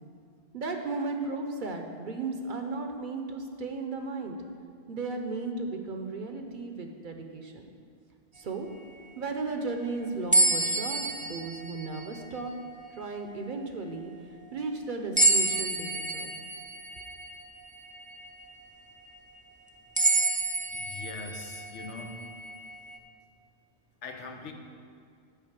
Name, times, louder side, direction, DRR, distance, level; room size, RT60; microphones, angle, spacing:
voice 1, 0.5-4.4 4.9-7.7 8.3-8.7 9.2-12.5 12.9-14.1 14.5-16.4, right 3 dB, 50° right, 4 dB, 0.8 m, -35 dB
sound 1, 10.3-12.7 13.3-13.4 15.2-18.5 19.0-19.1 20.0-23.0, right 2 dB, 10° right, 0.4 m, -28 dB
voice 2, 20.7-22.2 24.0-24.5, left 3 dB, 90° left, 4 dB, 1.2 m, -41 dB
8.1 x 5.0 x 7.3 m, 2.2 s
omnidirectional pair, 1.2 m